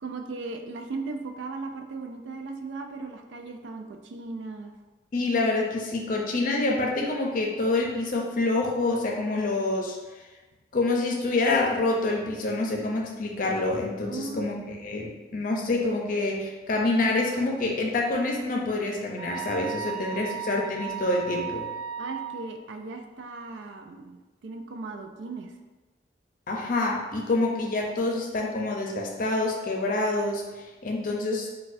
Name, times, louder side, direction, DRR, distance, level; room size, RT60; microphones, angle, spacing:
voice 1, 0.0-4.7 14.1-14.5 19.9-20.4 22.0-25.5, right 3 dB, 90° right, 5 dB, 0.4 m, -37 dB
voice 2, 5.1-10.0 10.7-21.7 26.5-31.5, left 2 dB, 50° left, 0 dB, 0.5 m, -27 dB
sound 1, 19.2-22.4, right 7 dB, 75° right, 1.1 m, -35 dB
4.0 x 2.2 x 2.6 m, 1.2 s
head